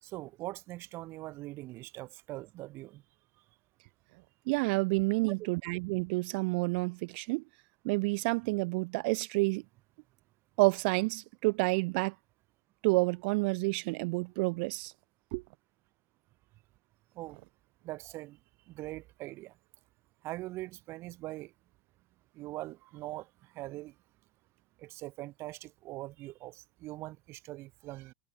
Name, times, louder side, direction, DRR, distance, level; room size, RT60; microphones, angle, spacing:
voice 1, 0.0-3.0 5.2-5.3 17.1-17.4 17.8-18.4 18.7-19.5 20.2-21.5 22.3-23.9 24.8-28.1, right 18 dB, 35° right, 4.4 m, -42 dB
voice 2, 4.5-7.4 7.8-9.6 10.6-12.1 12.8-14.9 15.3-15.4, right 28 dB, 55° right, 0.4 m, -29 dB
supercardioid pair, 165°, 7 cm